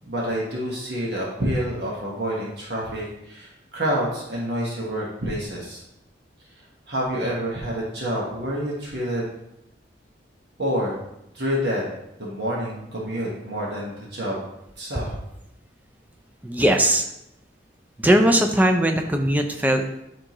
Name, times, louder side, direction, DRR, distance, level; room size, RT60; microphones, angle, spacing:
voice 1, 0.0-5.8 6.5-9.3 10.6-11.0 11.3-11.9 12.2-14.4 14.8-15.1, equal, 60° right, -5 dB, 1.4 m, -28 dB
voice 2, 16.4-17.0 18.0-20.0, right 1 dB, 10° right, 4 dB, 0.5 m, -19 dB
9.8 x 3.7 x 3.0 m, 0.84 s
head